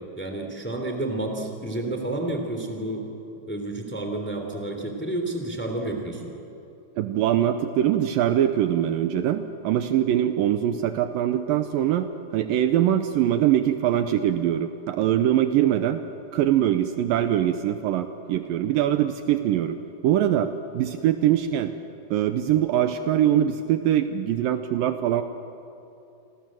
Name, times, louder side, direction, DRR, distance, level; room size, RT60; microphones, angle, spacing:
voice 1, 0.2-3.0 3.5-6.3, right 2 dB, 5° left, 3 dB, 2.6 m, -30 dB
voice 2, 7.0-16.0 16.3-19.8 20.0-21.8 22.1-25.2, right 11 dB, 75° right, 9 dB, 2.4 m, -23 dB
29.0 x 25.5 x 7.7 m, 2.8 s
omnidirectional pair, 4.4 m